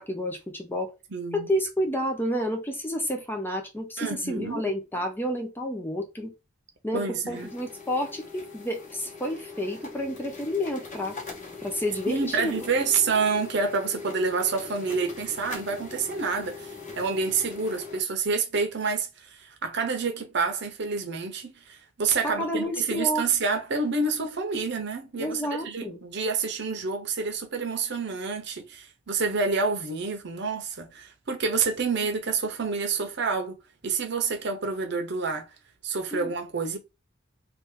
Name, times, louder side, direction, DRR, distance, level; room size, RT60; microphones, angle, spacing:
voice 1, 0.0-0.9 1.3-6.3 6.8-11.2 11.6-12.5 22.2-23.3 25.2-26.0 36.1-36.3, equal, 10° left, 0.7 m, -30 dB
voice 2, 1.1-1.5 4.0-4.6 6.9-7.5 12.1-16.7 17.0-19.1 19.6-21.5 22.0-33.6 33.8-35.5 35.8-36.8, right 4 dB, 60° right, 0.9 m, -28 dB
sound 1, 7.3-18.0, left 4 dB, 40° left, 1.0 m, -41 dB
2.8 x 2.6 x 3.7 m
head